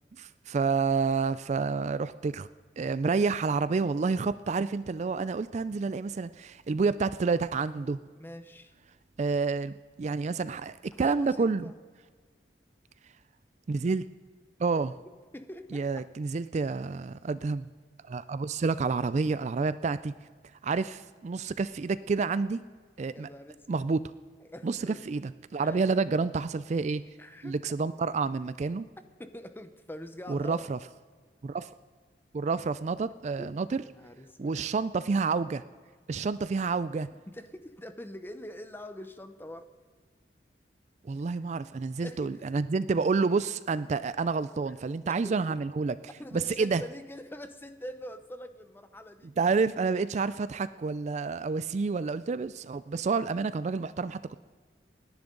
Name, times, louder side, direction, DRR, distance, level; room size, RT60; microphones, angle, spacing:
voice 1, 0.2-2.5 2.8-8.0 9.2-11.7 13.7-14.1 14.6-15.0 15.7-17.7 18.0-20.1 20.6-22.6 23.0-23.3 23.7-24.1 24.6-24.8 25.1-27.0 27.4-28.9 30.3-30.8 31.4-31.7 32.3-33.8 34.4-35.6 36.1-37.1 41.0-46.0 46.3-46.8 49.4-54.4, right 4 dB, 40° right, 15 dB, 0.3 m, -29 dB
voice 2, 8.2-8.7 11.0-11.7 15.3-16.0 23.1-23.9 24.4-25.1 25.6-25.9 27.2-27.5 29.2-30.7 33.4-33.5 33.8-34.5 37.3-39.7 42.0-42.6 44.7-44.8 45.2-45.6 46.2-49.3, left 1 dB, 10° left, 9 dB, 0.8 m, -44 dB
28.5 x 10.5 x 3.9 m, 1.6 s
head